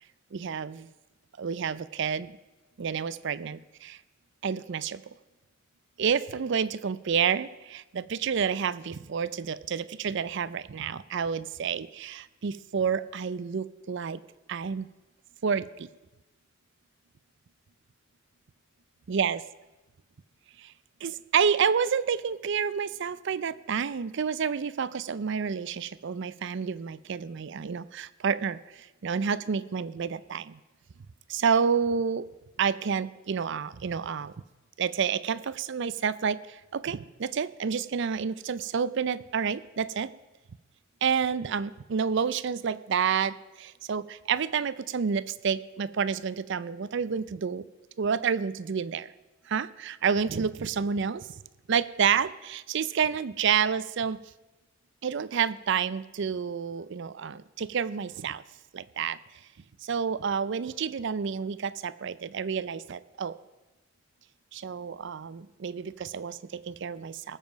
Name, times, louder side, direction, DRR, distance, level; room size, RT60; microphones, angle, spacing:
voice 1, 0.3-0.9 1.4-2.3 2.8-4.0 4.4-5.0 6.0-14.2 14.5-14.9 15.4-15.9 19.1-19.4 20.6-20.7 21.0-30.6 31.3-32.2 32.6-34.3 34.8-40.1 41.0-47.6 48.0-49.1 49.5-51.3 51.7-54.2 55.0-58.4 58.7-59.2 59.8-63.4 64.5-67.4, right 6 dB, 60° right, 16 dB, 0.5 m, -29 dB
18.5 x 7.4 x 5.1 m, 1.1 s
head